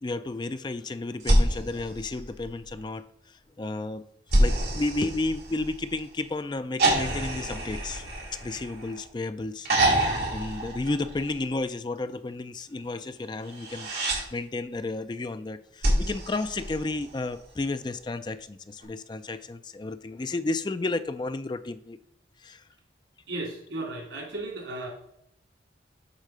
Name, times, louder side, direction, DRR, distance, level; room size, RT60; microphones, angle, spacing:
voice 1, 0.0-4.0 4.4-8.0 8.3-22.0 22.4-22.6, left 2 dB, 25° left, 11 dB, 0.3 m, -32 dB
sound 1, 1.2-2.8 4.3-6.0 6.8-9.1 9.6-11.5 13.4-14.2 15.8-17.3 18.8-18.9, right 1 dB, 60° right, 3.4 m, -27 dB
voice 2, 23.3-24.9, right 2 dB, 90° right, 0 dB, 3.5 m, -35 dB
8.2 x 3.8 x 6.6 m, 0.75 s
head